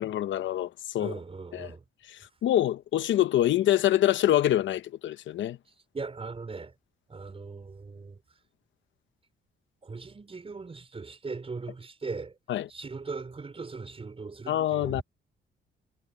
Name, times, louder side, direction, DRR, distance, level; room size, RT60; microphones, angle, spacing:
voice 1, 0.0-1.1 1.5-1.7 2.1-5.6 12.5-12.7 14.5-15.0, left 12 dB, 70° left, 0.9 m, -25 dB
voice 2, 1.0-1.8 5.9-6.7 7.1-8.2 9.8-12.4 12.7-15.0, right 4 dB, 30° right, 4.5 m, -39 dB
cardioid pair, 90°, 20 cm